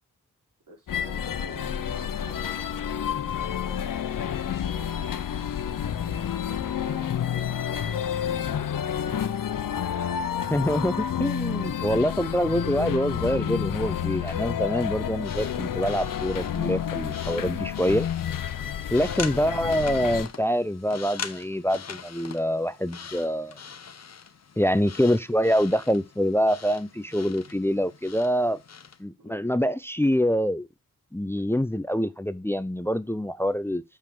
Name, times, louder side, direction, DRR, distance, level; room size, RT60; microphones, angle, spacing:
voice 1, 0.7-3.9 4.6-5.1 5.9-8.8 9.5-9.7 17.5-17.7 19.0-19.3 29.2-29.4, right 3 dB, 85° right, 4.6 m, -48 dB
sound 1, 0.9-20.3, left 9 dB, 90° left, 0.7 m, -29 dB
voice 2, 10.5-18.1 18.9-23.6 24.6-28.6 29.0-30.7 31.1-33.8, equal, 10° left, 0.5 m, -25 dB
sound 2, 15.1-29.0, left 6 dB, 55° left, 0.9 m, -42 dB
6.8 x 5.6 x 4.8 m
cardioid pair, 55°, 32 cm